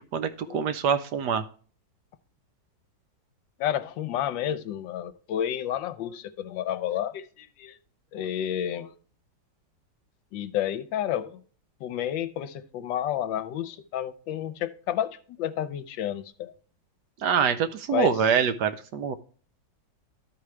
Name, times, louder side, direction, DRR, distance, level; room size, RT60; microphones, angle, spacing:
voice 1, 0.0-1.4 17.2-19.2, right 7 dB, 70° right, 1.1 m, -25 dB
voice 2, 3.6-7.8 8.1-8.9 10.3-11.4 11.8-16.5 17.9-18.1, left 10 dB, 75° left, 1.3 m, -30 dB
12.5 x 4.8 x 3.1 m
omnidirectional pair, 2.1 m